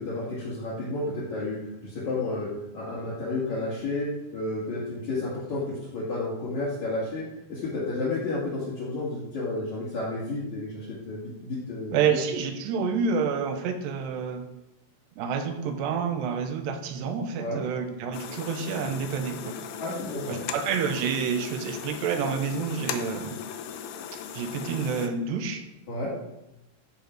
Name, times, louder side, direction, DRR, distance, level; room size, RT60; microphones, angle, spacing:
voice 1, 0.0-12.2 17.4-17.6 19.8-20.4 25.9-26.1, left 2 dB, 50° left, -8 dB, 3.4 m, -31 dB
voice 2, 11.9-14.4 15.2-19.5 20.3-23.4 24.3-25.6, right 6 dB, 85° right, 6 dB, 3.2 m, -28 dB
sound 1, 18.1-25.1, left 8 dB, 80° left, 2.8 m, -38 dB
14.5 x 7.0 x 4.7 m, 0.91 s
omnidirectional pair, 4.9 m